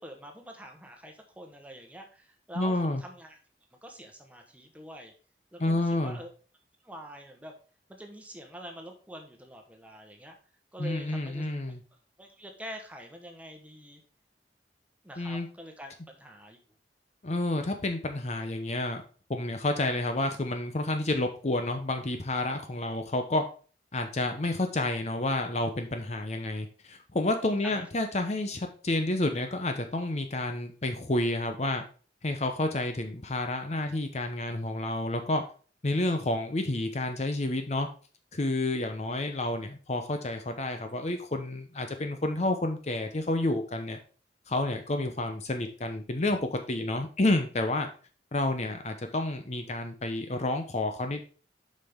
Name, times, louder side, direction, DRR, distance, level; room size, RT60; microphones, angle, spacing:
voice 1, 0.0-3.4 3.8-5.1 5.5-6.3 6.8-7.5 8.0-10.4 10.7-11.4 12.2-14.0 15.0-16.6 27.6-27.9, equal, 10° right, 3 dB, 1.1 m, -45 dB
voice 2, 2.5-3.0 5.6-6.2 10.8-11.8 15.2-15.5 17.2-19.0 19.3-23.4 23.9-31.8 32.2-35.4 35.8-37.9 38.3-44.0 44.5-47.9 48.3-51.2, left 2 dB, 40° left, 6 dB, 0.8 m, -30 dB
7.4 x 5.5 x 3.6 m, 0.38 s
head